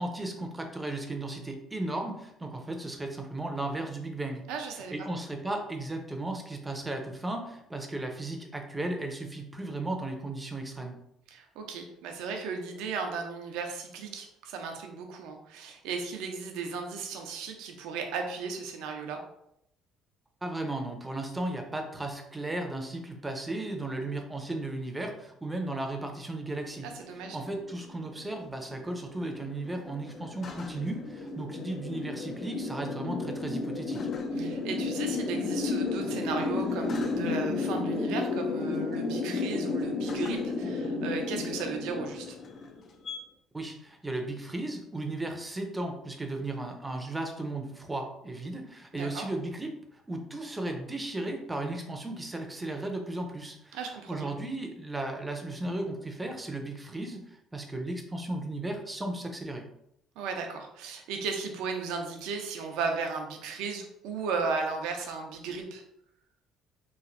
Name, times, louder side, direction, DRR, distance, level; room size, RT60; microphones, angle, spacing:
voice 1, 0.0-4.4 4.9-11.0 20.4-26.9 27.1-34.1 43.5-53.8 54.1-59.6, right 2 dB, 15° right, 4 dB, 0.6 m, -35 dB
voice 2, 4.5-5.1 11.3-19.2 26.8-27.4 34.3-42.4 48.9-49.3 53.7-54.3 60.2-65.8, right 5 dB, 80° right, 3 dB, 0.5 m, -35 dB
sound 1, 26.8-43.2, left 3 dB, 50° left, 0.4 m, -33 dB
3.1 x 2.5 x 2.5 m, 0.77 s
supercardioid pair, 85°, 0 cm